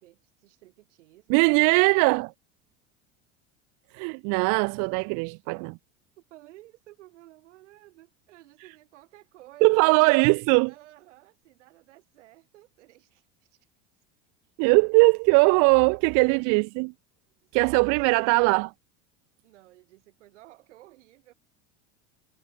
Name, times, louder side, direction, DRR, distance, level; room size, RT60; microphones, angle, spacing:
voice 1, 0.0-1.4 6.2-10.3 10.6-13.6 17.4-18.2 19.4-21.3, right 16 dB, 85° right, 7.2 m, -53 dB
voice 2, 1.3-2.3 3.9-5.8 9.6-10.7 14.6-16.9 17.5-18.7, right 33 dB, 55° right, 0.5 m, -20 dB
supercardioid pair, 95°, 35 cm